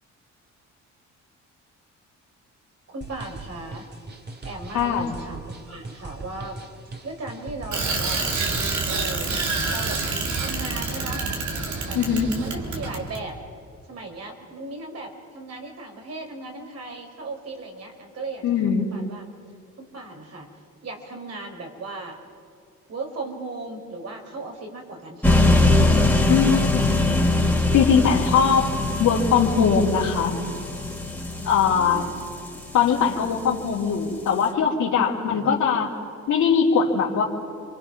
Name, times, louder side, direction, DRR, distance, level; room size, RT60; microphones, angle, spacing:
voice 1, 2.9-3.8 4.4-6.6 7.0-8.3 8.9-9.3 9.7-10.0 10.3-11.2 11.9-12.0 12.4-13.4 13.9-19.3 19.8-20.5 20.8-22.2 22.9-25.4 26.5-27.0 31.4-32.2 35.1-35.6, right 2 dB, 55° right, 3 dB, 4.4 m, -37 dB
sound 1, 3.0-8.8, right 2 dB, 35° right, 2.6 m, -40 dB
voice 2, 4.7-5.2 11.9-12.3 18.4-18.9 26.3-26.7 27.7-30.4 31.4-32.1 32.7-35.9 36.3-37.2, left 6 dB, 70° left, -3 dB, 3.0 m, -21 dB
Bicycle, 7.7-13.2, right 3 dB, 70° right, 3.5 m, -27 dB
sound 2, 25.2-33.3, left 2 dB, 5° left, 2.9 m, -22 dB
29.0 x 24.5 x 6.0 m, 2.4 s
cardioid pair, 90°, 30 cm